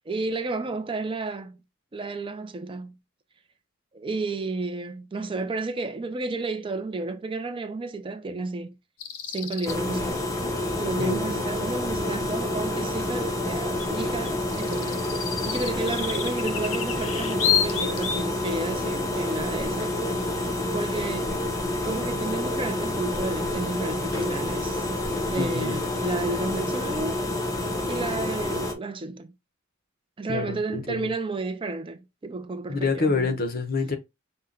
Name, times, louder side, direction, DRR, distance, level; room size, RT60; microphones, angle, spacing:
voice 1, 0.0-1.6 1.9-2.9 3.9-8.8 9.3-10.2 10.8-20.5 20.7-21.4 21.8-25.0 25.3-27.3 27.9-29.3 30.2-33.3, right 3 dB, 25° right, 0.4 m, -32 dB
sound 1, 9.0-9.8 13.8-13.9 14.3-18.3, left 8 dB, 80° left, 0.7 m, -29 dB
sound 2, 9.7-28.7, left 1 dB, 15° left, 0.8 m, -28 dB
voice 2, 11.0-11.4 25.4-25.8 30.3-31.1 32.7-34.0, left 3 dB, 45° left, 0.8 m, -27 dB
5.5 x 2.1 x 3.7 m
head